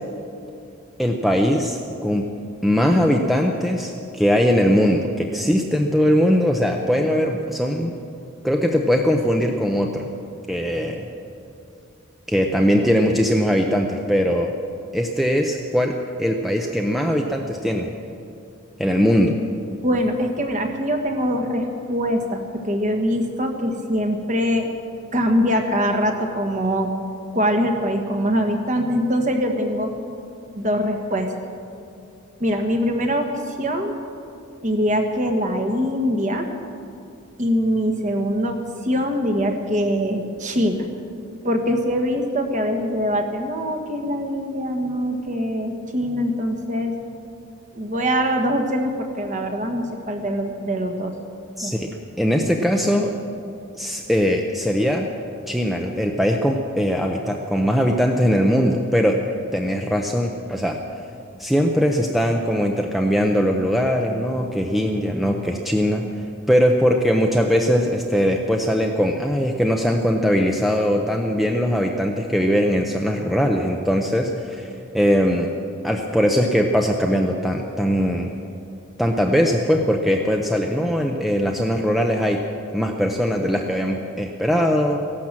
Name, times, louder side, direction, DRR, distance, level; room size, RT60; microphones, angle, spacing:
voice 1, 1.0-2.3 2.6-8.0 8.4-10.1 10.5-11.1 12.3-14.5 14.9-15.9 16.2-17.9 18.8-19.4 51.6-53.2 53.8-55.1 55.5-59.2 59.5-60.8 61.4-66.1 66.5-75.5 75.8-78.4 79.0-82.4 82.7-85.0, equal, ahead, 2 dB, 0.6 m, -20 dB
voice 2, 19.8-24.7 25.1-26.9 27.3-29.9 30.6-31.3 32.4-34.0 34.6-36.5 37.4-40.9 41.4-46.9 47.7-51.1 51.6-51.7, equal, 35° right, 4 dB, 1.4 m, -23 dB
16.0 x 12.0 x 7.5 m, 2.6 s
head